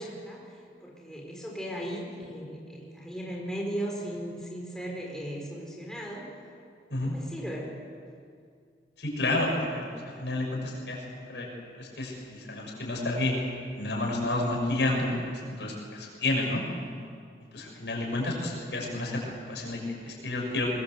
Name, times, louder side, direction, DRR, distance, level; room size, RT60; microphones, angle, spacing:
voice 1, 0.0-6.3 6.9-7.7 17.9-18.5, equal, 5° left, -2 dB, 4.0 m, -37 dB
voice 2, 9.0-9.8 10.2-11.5 11.7-13.3 13.7-15.1 15.5-16.6 17.5-19.2 19.5-19.8 20.1-20.7, left 2 dB, 85° left, -1 dB, 6.6 m, -30 dB
23.0 x 20.5 x 7.8 m, 2.3 s
head